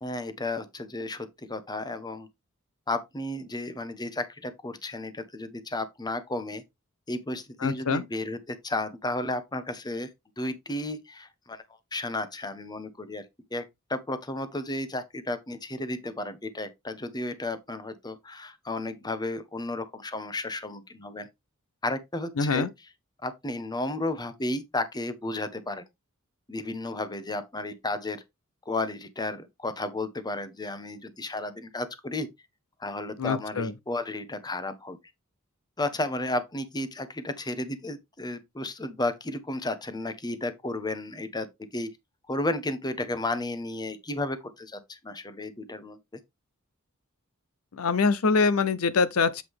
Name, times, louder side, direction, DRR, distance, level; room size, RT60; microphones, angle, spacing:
voice 1, 0.0-2.3 2.9-6.6 7.1-10.1 10.4-11.6 11.9-13.2 13.5-13.6 13.9-21.3 21.8-22.7 23.2-25.8 26.5-28.2 28.7-32.3 32.8-35.0 35.8-41.5 41.7-41.9 42.3-46.0, left 2 dB, 20° left, 1.0 m, -33 dB
voice 2, 7.6-8.0 22.4-22.7 33.2-33.7 47.7-49.4, left 4 dB, 85° left, 0.7 m, -24 dB
8.2 x 4.7 x 3.6 m
head